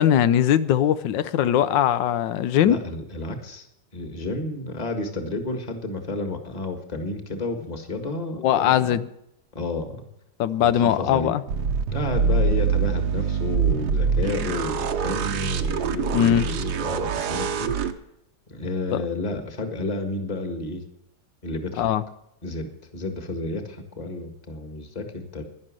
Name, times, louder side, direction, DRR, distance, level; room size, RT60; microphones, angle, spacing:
voice 1, 0.0-2.8 8.4-9.1 10.4-11.4 16.1-16.5 18.9-19.0 21.8-22.0, left 10 dB, 85° left, 14 dB, 1.4 m, -20 dB
voice 2, 2.6-3.7 3.9-9.0 9.5-10.1 10.6-11.3 11.9-17.9 18.5-20.8 21.4-21.9 22.4-25.5, left 2 dB, 25° left, 6 dB, 1.7 m, -31 dB
sound 1, 11.5-17.9, right 6 dB, 70° right, 1.4 m, -24 dB
11.5 x 11.0 x 7.5 m, 0.81 s
omnidirectional pair, 1.9 m